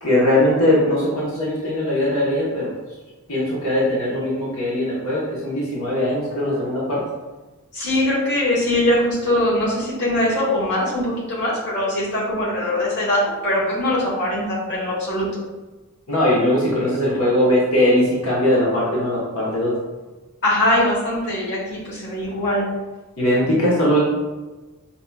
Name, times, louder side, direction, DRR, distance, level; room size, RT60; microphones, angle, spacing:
voice 1, 0.0-2.7 3.3-7.0 16.1-19.7 23.2-24.0, left 1 dB, 70° left, -6 dB, 1.1 m, -20 dB
voice 2, 7.7-15.3 20.4-22.7, left 1 dB, 50° left, -7 dB, 1.2 m, -21 dB
5.3 x 2.9 x 2.3 m, 1.2 s
head